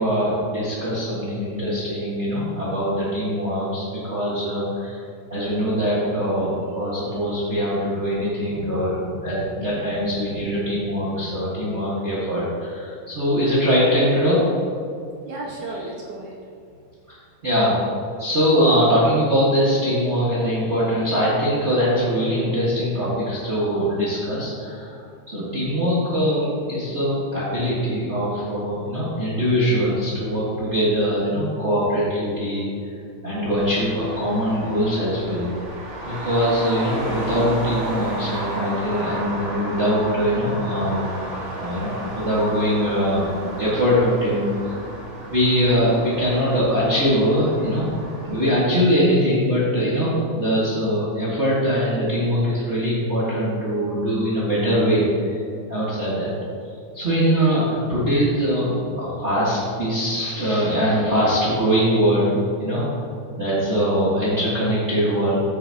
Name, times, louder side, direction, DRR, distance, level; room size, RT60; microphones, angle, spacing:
voice 1, 0.0-5.0 5.3-14.5 17.1-17.2 17.4-17.8 18.2-25.0 25.3-32.7 33.2-35.5 36.0-41.1 41.5-43.3 43.6-44.8 45.3-47.9 48.2-55.4 55.7-56.3 56.9-58.7 59.0-62.9 63.4-65.4, equal, 50° right, -9 dB, 0.8 m, -22 dB
voice 2, 7.0-7.5 8.4-11.9 15.2-16.4, right 2 dB, 75° right, -2 dB, 1.8 m, -37 dB
Traffic noise roadway noise, 33.6-48.5, right 1 dB, 30° right, 1.5 m, -33 dB
14.5 x 7.0 x 2.9 m, 2.4 s
omnidirectional pair, 4.3 m